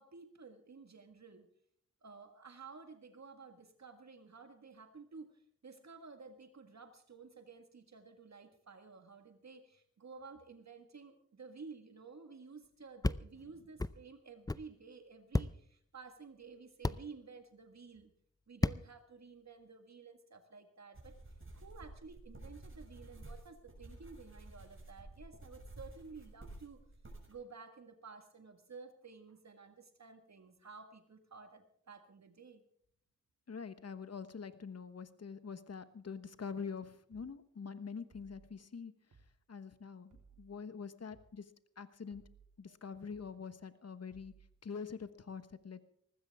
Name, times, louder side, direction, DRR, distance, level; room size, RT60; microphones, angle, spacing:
voice 1, 0.0-1.5 2.0-18.1 18.5-21.1 21.5-26.8 27.3-32.6 42.7-42.8 43.6-43.7, right 4 dB, 60° right, 7 dB, 1.8 m, -53 dB
sound 1, 13.0-13.2 13.8-13.9 14.5-14.6 15.3-15.5 16.8-17.0 18.6-18.8, left 2 dB, 10° left, 0.5 m, -31 dB
sound 2, 20.9-27.3, right 2 dB, 40° right, 6.5 m, -52 dB
voice 2, 33.5-38.9 39.5-41.4 41.8-42.2 42.6-44.3 44.6-45.8, left 5 dB, 55° left, 12 dB, 1.2 m, -45 dB
sound 3, 37.1-37.3 38.1-38.5 39.1-39.3 40.1-40.5 41.1-41.3 42.1-42.5 43.1-43.3 44.1-44.5, right 5 dB, 80° right, 3.3 m, -62 dB
19.0 x 15.5 x 3.5 m, 0.65 s
cardioid pair, 50°, 31 cm